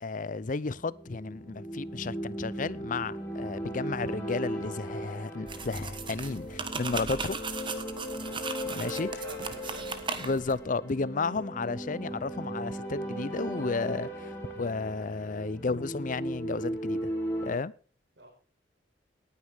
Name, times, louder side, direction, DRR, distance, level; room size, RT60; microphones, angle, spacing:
voice 1, 0.0-7.4 8.7-9.1 10.2-17.0 17.4-17.7, left 4 dB, 45° left, 0.6 m, -33 dB
sound 1, 0.7-17.6, right 1 dB, 15° left, 4.1 m, -37 dB
sound 2, 5.5-10.6, right 4 dB, 25° right, 1.4 m, -37 dB
voice 2, 8.6-10.0 11.0-11.1 18.2-18.3, right 1 dB, 70° right, 4.8 m, -48 dB
19.0 x 9.7 x 3.5 m
head